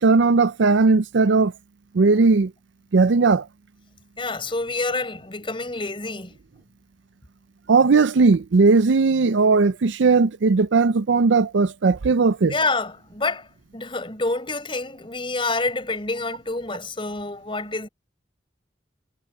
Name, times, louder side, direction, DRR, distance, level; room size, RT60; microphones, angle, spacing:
voice 1, 0.0-1.5 1.9-2.5 2.9-3.5 7.7-12.5, right 4 dB, 80° right, 0.5 m, -17 dB
voice 2, 4.2-6.3 12.5-13.5 13.7-17.9, left 3 dB, 30° left, 6.1 m, -27 dB
head